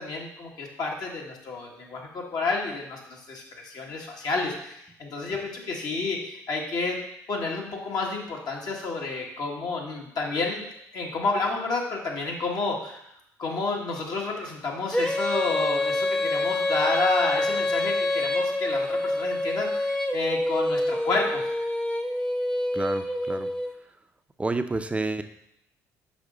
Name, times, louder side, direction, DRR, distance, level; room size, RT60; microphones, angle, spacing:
voice 1, 0.0-7.0 7.3-10.6 10.9-13.0 13.4-21.4, left 3 dB, 55° left, -1 dB, 1.6 m, -30 dB
Female singing, 14.9-23.7, left 1 dB, 10° left, 0.8 m, -26 dB
voice 2, 22.7-23.5 24.4-25.2, right 3 dB, 15° right, 9 dB, 0.6 m, -29 dB
6.1 x 5.0 x 3.9 m, 0.77 s
hypercardioid pair, 60°, 8 cm